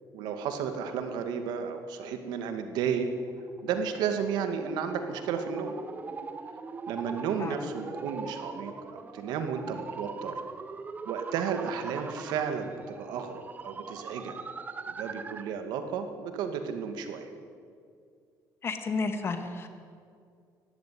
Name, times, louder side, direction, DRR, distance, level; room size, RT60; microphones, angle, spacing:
voice 1, 0.1-3.1 3.6-5.7 6.9-10.3 11.1-14.3 14.9-17.3, right 7 dB, 85° right, 7 dB, 2.3 m, -33 dB
sound 1, 3.0-15.6, right 4 dB, 25° right, 1.0 m, -42 dB
voice 2, 18.6-19.7, left 4 dB, 35° left, 7 dB, 2.1 m, -32 dB
20.0 x 15.0 x 9.5 m, 2.3 s
cardioid pair, 140°, 7 cm